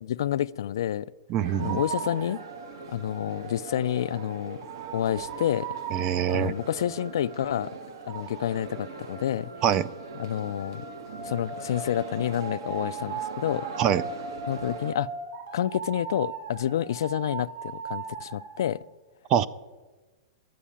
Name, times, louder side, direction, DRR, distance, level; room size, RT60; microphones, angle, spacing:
voice 1, 0.0-1.1 1.6-2.4 2.9-4.6 4.9-5.7 6.3-7.7 8.1-9.5 10.2-10.8 11.2-13.7 14.5-15.1 15.5-18.8, left 11 dB, 65° left, 17 dB, 0.3 m, -29 dB
voice 2, 1.3-1.8 5.9-6.5 9.6-9.9 13.8-14.0 19.3-19.5, right 9 dB, 20° right, 18 dB, 0.3 m, -24 dB
sound 1, 1.4-18.7, right 5 dB, 35° right, 2.3 m, -39 dB
sound 2, 1.4-14.9, right 4 dB, 60° right, 1.2 m, -42 dB
11.0 x 9.2 x 8.6 m, 1.2 s
supercardioid pair, 175°, 2 cm